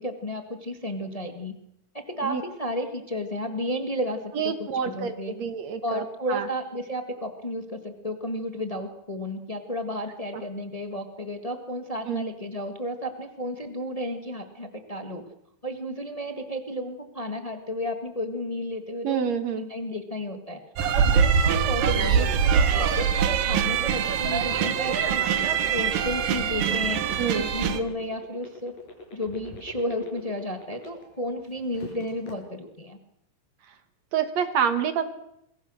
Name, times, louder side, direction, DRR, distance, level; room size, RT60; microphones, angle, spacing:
voice 1, 0.0-1.5 1.9-5.3 5.8-15.2 15.6-19.2 19.6-20.6 20.9-27.0 27.3-28.7 29.1-33.0, equal, 30° left, 6 dB, 0.6 m, -32 dB
voice 2, 4.4-6.0 6.3-6.5 12.1-12.3 19.0-19.6 27.2-27.5 34.1-35.0, right 7 dB, 60° right, 9 dB, 2.4 m, -27 dB
sound 1, 20.8-27.8, right 7 dB, 80° right, 3.2 m, -23 dB
sound 2, 23.1-31.2 31.6-32.3, left 2 dB, 75° left, 7.4 m, -42 dB
27.0 x 22.0 x 6.4 m, 0.79 s
omnidirectional pair, 4.0 m